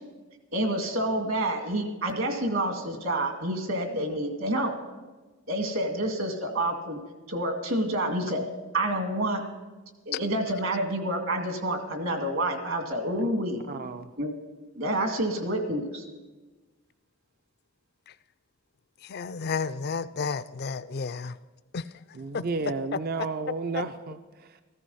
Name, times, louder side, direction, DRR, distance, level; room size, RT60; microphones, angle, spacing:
voice 1, 0.5-4.7 5.5-7.0 7.3-8.5 8.7-9.4 10.1-13.6 14.2-14.3 14.7-16.0, right 1 dB, 65° right, 2.1 m, -28 dB
voice 2, 13.7-14.1 22.1-24.6, right 4 dB, 45° right, 0.5 m, -32 dB
voice 3, 19.1-21.3 21.7-21.8 22.3-22.4, left 5 dB, 50° left, 0.4 m, -31 dB
15.0 x 13.5 x 5.5 m
head